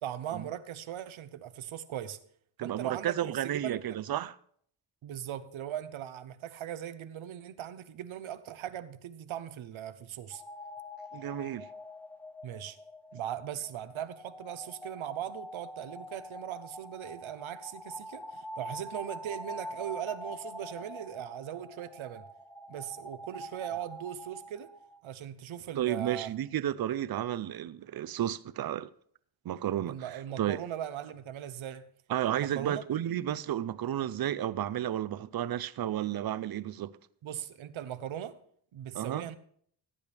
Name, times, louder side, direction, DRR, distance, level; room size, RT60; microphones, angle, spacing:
voice 1, 0.0-2.2 2.6-4.0 5.0-10.4 12.4-12.8 13.1-22.2 22.7-24.7 25.0-26.3 29.9-31.9 32.3-32.8 37.2-38.4 38.7-39.4, right 10 dB, 85° right, 0.9 m, -39 dB
voice 2, 2.6-4.4 11.1-11.7 25.8-28.9 29.4-30.6 32.1-36.9 38.9-39.3, right 11 dB, 50° right, 0.5 m, -32 dB
sound 1, 10.3-25.0, equal, 5° left, 0.3 m, -45 dB
15.0 x 9.9 x 3.4 m
wide cardioid pair, 120°, 46 cm